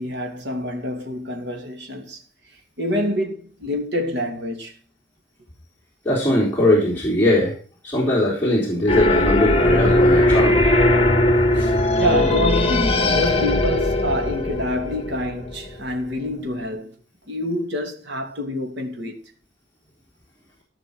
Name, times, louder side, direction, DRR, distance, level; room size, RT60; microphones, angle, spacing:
voice 1, 0.0-2.2 2.8-4.7 12.0-16.9 17.3-19.2, left 1 dB, 70° right, 2.7 m, -26 dB
voice 2, 6.1-7.5 7.8-10.6 11.6-11.7, left 1 dB, 10° left, 3.5 m, -20 dB
sound 1, 8.9-15.7, left 1 dB, 35° left, 1.5 m, -19 dB
15.0 x 5.8 x 6.3 m
head